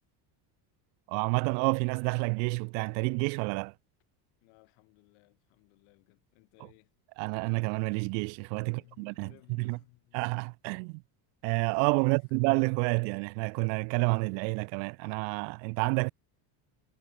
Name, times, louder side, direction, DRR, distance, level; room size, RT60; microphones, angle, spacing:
voice 1, 1.1-3.7 7.2-9.3 9.6-9.8 10.1-11.0 11.4-16.1, right 40 dB or more, 85° right, 1.1 m, -29 dB
voice 2, 4.4-7.0 8.6-10.2 12.0-12.2, left 37 dB, 70° left, 7.4 m, -61 dB
cardioid pair, 175°, 50 cm